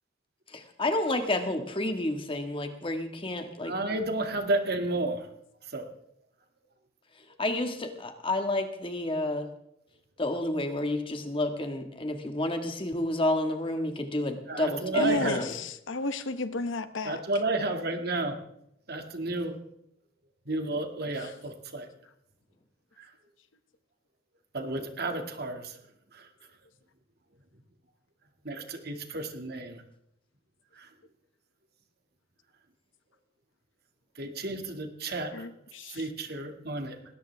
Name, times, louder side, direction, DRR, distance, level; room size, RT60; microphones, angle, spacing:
voice 1, 0.5-3.7 7.4-9.5 10.2-15.6, left 1 dB, 25° left, 6 dB, 1.8 m, -30 dB
voice 2, 3.6-5.2 5.7-5.8 14.5-15.5 17.1-18.4 18.9-19.5 20.5-21.9 24.5-25.7 28.4-29.8 34.2-35.4 35.9-37.0, right 2 dB, 55° right, 5 dB, 2.2 m, -31 dB
voice 3, 15.0-17.2 21.2-21.3 35.3-36.1, left 2 dB, 75° left, 11 dB, 1.1 m, -33 dB
19.5 x 18.0 x 3.5 m, 0.76 s
head